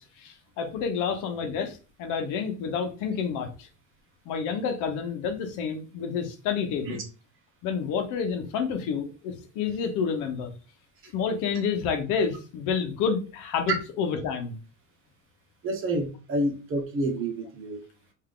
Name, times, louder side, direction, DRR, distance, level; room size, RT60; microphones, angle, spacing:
voice 1, 0.0-3.7 4.3-7.0 7.6-10.5 11.1-14.6, left 6 dB, 65° left, 0.9 m, -29 dB
voice 2, 15.6-17.8, right 1 dB, 40° right, 1.2 m, -29 dB
3.5 x 2.8 x 3.7 m
cardioid pair, 140°, 33 cm